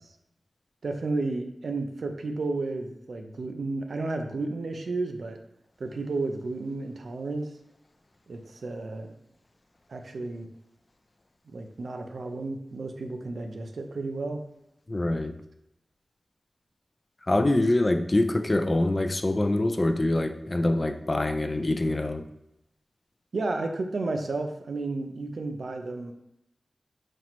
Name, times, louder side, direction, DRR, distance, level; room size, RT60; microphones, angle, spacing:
voice 1, 0.8-5.4 5.8-7.5 8.3-9.1 9.9-10.5 11.5-14.4 23.3-26.1, right 3 dB, 75° right, 5 dB, 0.5 m, -32 dB
voice 2, 14.9-15.4 17.2-22.3, left 1 dB, 35° left, 8 dB, 0.4 m, -25 dB
4.2 x 2.0 x 4.3 m, 0.83 s
cardioid pair, 45°, 0 cm